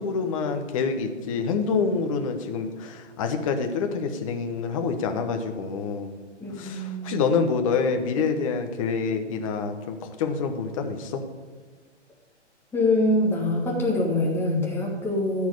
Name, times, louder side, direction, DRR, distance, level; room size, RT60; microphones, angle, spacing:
voice 1, 0.0-6.1 6.6-11.2, left 5 dB, 30° left, 6 dB, 1.2 m, -27 dB
voice 2, 6.4-7.2 12.7-15.5, left 1 dB, 5° left, -2 dB, 1.5 m, -24 dB
14.0 x 4.6 x 8.6 m, 1.4 s
figure-of-eight pair, 140°, 36 cm